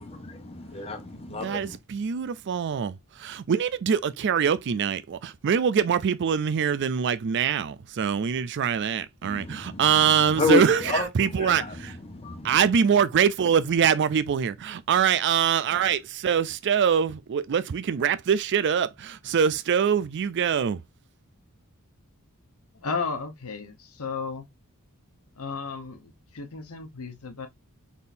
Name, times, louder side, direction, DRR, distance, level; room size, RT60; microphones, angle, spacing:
voice 1, 0.0-1.8 9.2-9.9 10.4-11.7 12.1-12.6, left 3 dB, 25° left, 1.1 m, -29 dB
voice 2, 1.3-12.0 12.4-20.8, right 7 dB, 50° right, 0.4 m, -24 dB
voice 3, 22.7-24.5 25.4-27.5, left 4 dB, 75° left, 1.0 m, -34 dB
4.2 x 3.6 x 2.6 m
head